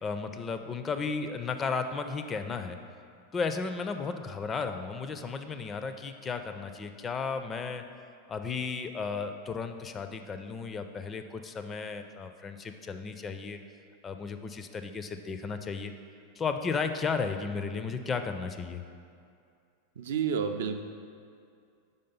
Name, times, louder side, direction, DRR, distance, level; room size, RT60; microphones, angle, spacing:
voice 1, 0.0-2.8 3.3-7.8 8.3-13.6 14.0-15.9 16.4-18.8, left 5 dB, 20° left, 8 dB, 0.4 m, -34 dB
voice 2, 20.0-20.8, right 7 dB, 60° right, 6 dB, 0.4 m, -30 dB
5.5 x 5.2 x 5.4 m, 2.4 s
figure-of-eight pair, 90°, 0 cm